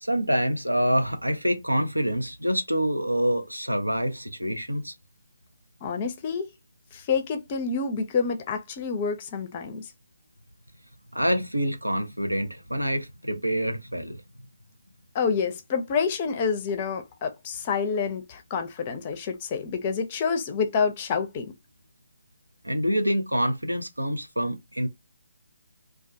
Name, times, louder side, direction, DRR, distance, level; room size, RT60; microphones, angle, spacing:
voice 1, 0.0-4.9 11.1-14.2 22.6-24.9, equal, 90° right, 0.5 m, -26 dB
voice 2, 5.8-6.5 6.9-9.8 15.1-21.5, left 5 dB, 30° left, 0.4 m, -28 dB
2.2 x 2.2 x 2.6 m
figure-of-eight pair, 145°, 0 cm